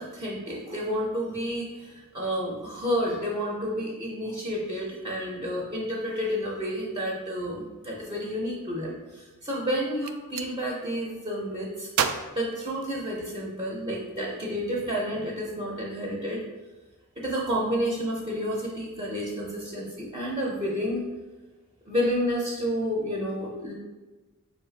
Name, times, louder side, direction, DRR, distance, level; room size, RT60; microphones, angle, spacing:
voice 1, 0.0-16.4 17.2-21.0 21.9-23.7, equal, 20° right, -4 dB, 0.6 m, -30 dB
Gunshot gunfire, 9.9-10.5 11.9-13.4, right 8 dB, 75° right, 0.3 m, -31 dB
4.5 x 2.4 x 3.9 m, 1.2 s
head